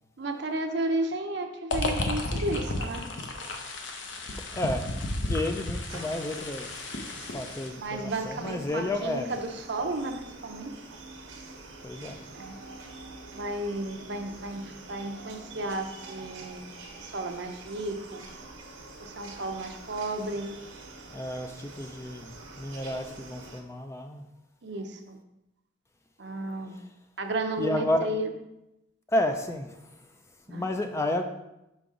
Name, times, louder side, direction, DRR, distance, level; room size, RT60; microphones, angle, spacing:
voice 1, 0.2-3.1 7.8-10.7 12.3-12.6 13.3-16.7 17.0-18.3 19.0-20.5 24.6-25.2 26.2-26.8 27.2-28.3 30.5-30.7, right 2 dB, 55° right, 6 dB, 0.6 m, -33 dB
sound 1, 1.7-7.7, left 2 dB, 65° left, 0.8 m, -33 dB
voice 2, 4.4-4.9 5.3-6.9 7.3-9.3 11.8-12.2 21.1-24.3 26.7-26.8 27.6-28.1 29.1-29.9 30.5-31.2, left 1 dB, 15° left, 5 dB, 0.3 m, -31 dB
sound 2, 5.9-23.6, right 3 dB, 85° right, 1.1 m, -46 dB
5.7 x 5.2 x 3.7 m, 0.90 s
head